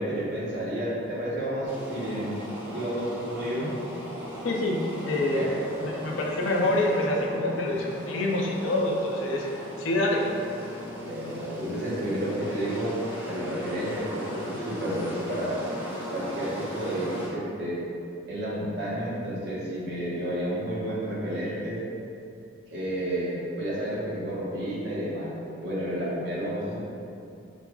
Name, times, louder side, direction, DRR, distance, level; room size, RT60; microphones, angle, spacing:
voice 1, 0.0-2.4 2.7-3.7 5.3-5.9 11.0-12.9 13.3-15.5 16.1-17.8 18.3-21.8 22.7-26.8, right 1 dB, 60° right, -7 dB, 0.9 m, -31 dB
sound 1, 1.6-17.3, equal, 10° right, 0.5 m, -38 dB
voice 2, 4.4-5.4 5.8-10.2, left 1 dB, 80° left, -1 dB, 0.5 m, -26 dB
5.1 x 2.2 x 2.2 m, 2.6 s
head